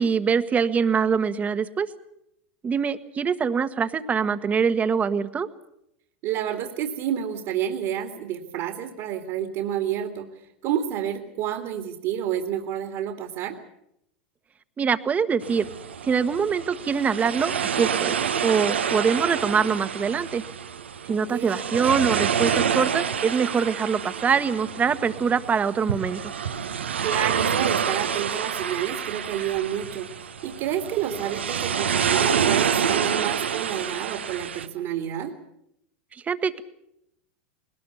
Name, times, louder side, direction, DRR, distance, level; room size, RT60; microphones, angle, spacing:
voice 1, 0.0-1.9 2.6-5.5 14.8-15.7 16.0-18.1 18.4-20.4 21.1-26.3 36.3-36.6, right 6 dB, 25° right, 12 dB, 1.3 m, -24 dB
voice 2, 6.2-10.3 10.6-13.6 21.1-21.6 27.0-35.3, right 10 dB, 55° right, 5 dB, 2.3 m, -29 dB
sound 1, 15.4-34.7, right 7 dB, 85° right, 1.1 m, -27 dB
21.0 x 19.5 x 8.2 m, 0.79 s
hypercardioid pair, 95°, 6 cm